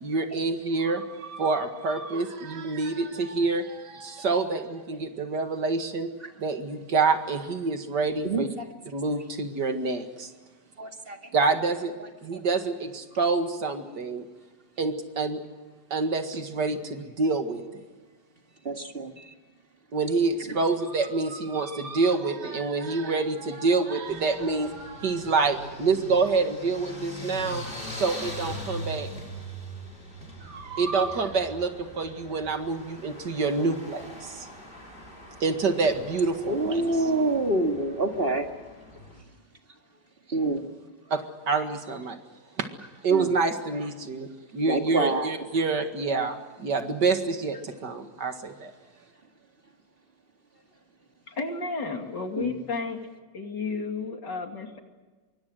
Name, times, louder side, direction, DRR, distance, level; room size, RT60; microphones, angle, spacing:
voice 1, 0.0-6.1 6.4-8.5 8.9-10.3 11.3-12.0 12.2-14.3 14.8-15.4 15.9-17.8 19.9-27.6 27.9-29.1 30.4-34.5 35.4-36.8 41.1-41.2 41.5-42.2 42.6-42.7 43.0-48.7, right 4 dB, 70° right, 6 dB, 2.5 m, -27 dB
voice 2, 8.2-8.7 10.8-11.2 12.3-12.4 18.6-19.2 20.5-20.6 36.5-38.5 40.3-40.6 43.1-43.3 44.7-45.3 52.4-52.5, right 2 dB, 35° right, 4 dB, 2.1 m, -26 dB
sound 1, 24.1-39.2, equal, 30° left, 6.0 m, -41 dB
voice 3, 51.3-53.0 53.3-54.8, left 4 dB, 75° left, 4 dB, 3.3 m, -32 dB
25.5 x 23.5 x 6.6 m, 1.3 s
omnidirectional pair, 1.9 m